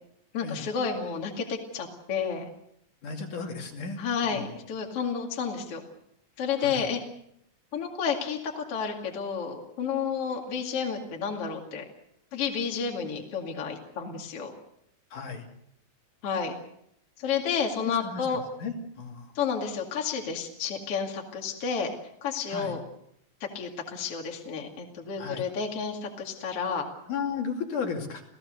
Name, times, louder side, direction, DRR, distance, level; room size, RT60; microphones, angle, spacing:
voice 1, 0.3-2.5 4.0-5.8 6.4-7.0 7.7-11.8 12.3-14.5 16.2-16.5 17.2-18.4 19.3-21.9 22.2-22.8 23.5-26.8, left 6 dB, 45° left, 1 dB, 3.0 m, -31 dB
voice 2, 3.0-4.5 6.6-6.9 15.1-15.5 18.0-19.3 22.5-22.8 25.2-25.5 27.1-28.2, left 5 dB, 60° left, 1 dB, 4.1 m, -35 dB
30.0 x 16.5 x 6.6 m, 0.75 s
omnidirectional pair, 4.2 m